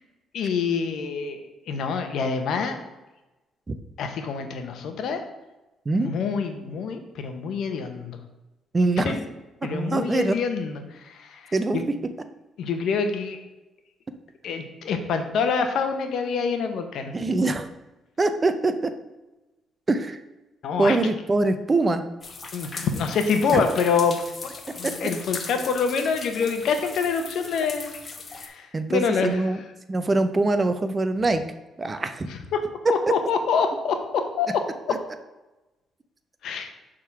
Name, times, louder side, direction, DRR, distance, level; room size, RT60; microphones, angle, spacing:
voice 1, 0.3-2.8 4.0-5.2 6.0-8.2 9.0-9.2 9.6-11.8 12.6-13.4 14.4-17.1 20.6-21.0 22.5-24.2 24.7-27.9 28.3-29.4 32.5-32.6 32.9-34.6 36.4-36.7, left 5 dB, 75° left, 6 dB, 0.9 m, -26 dB
voice 2, 8.7-9.1 9.6-10.4 11.5-11.8 17.1-17.7 18.2-18.9 19.9-20.2 20.8-22.0 23.5-23.6 24.8-24.9 28.7-29.6 29.9-31.4 31.8-32.3 33.1-33.2 34.9-35.0, right 2 dB, 30° right, 9 dB, 0.6 m, -23 dB
sound 1, 22.2-28.5, left 4 dB, 40° left, 0.9 m, -38 dB
6.2 x 3.7 x 5.7 m, 1.0 s
cardioid pair, 90°, 0 cm